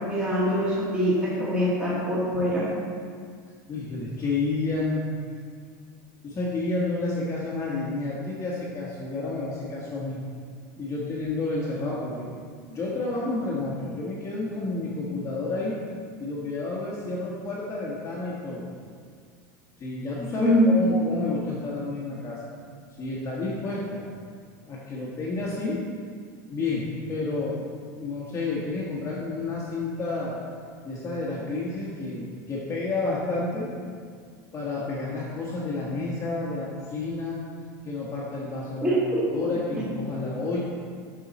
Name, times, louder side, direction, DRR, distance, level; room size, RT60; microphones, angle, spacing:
voice 1, 0.0-2.7 20.4-20.7 38.8-39.2, equal, 10° right, -9 dB, 1.9 m, -23 dB
voice 2, 3.7-5.1 6.2-10.2 10.8-12.3 12.7-15.7 16.2-18.7 19.8-22.4 23.0-24.0 24.7-25.8 26.5-27.6 27.9-30.4 30.8-33.7 34.5-37.4 37.8-40.6, left 3 dB, 30° left, -6 dB, 1.3 m, -30 dB
7.0 x 6.3 x 4.2 m, 2.1 s
supercardioid pair, 125°, 10 cm